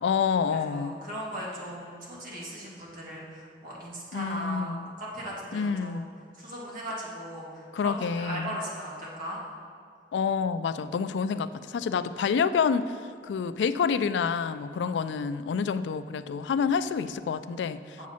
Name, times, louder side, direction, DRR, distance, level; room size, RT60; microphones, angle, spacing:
voice 1, 0.0-1.0 4.1-4.9 5.5-6.1 7.7-8.6 10.1-18.1, left 6 dB, 85° left, 13 dB, 0.3 m, -28 dB
voice 2, 0.7-6.0 6.4-9.4 14.8-14.9 18.0-18.1, equal, 50° right, -5 dB, 1.9 m, -38 dB
7.4 x 7.2 x 4.2 m, 2.4 s
head